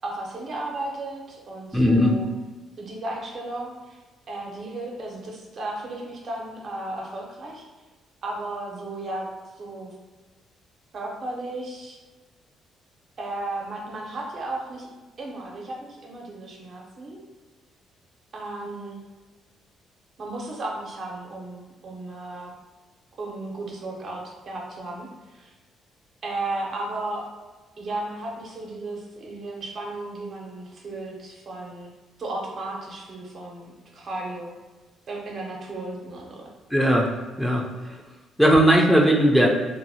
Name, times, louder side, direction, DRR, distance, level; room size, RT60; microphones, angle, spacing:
voice 1, 0.0-2.3 2.8-4.0 4.3-7.6 8.2-9.3 9.6-9.9 10.9-12.0 13.2-14.9 15.2-17.2 18.3-19.0 20.2-22.5 23.2-25.5 26.2-27.3 27.8-31.9 32.2-34.5 35.1-36.5, right 2 dB, 55° right, -1 dB, 0.8 m, -34 dB
voice 2, 1.7-2.2 36.7-37.1 37.4-37.6 38.4-39.5, equal, ahead, -1 dB, 0.5 m, -17 dB
2.7 x 2.6 x 2.7 m, 1.3 s
hypercardioid pair, 50°, 0 cm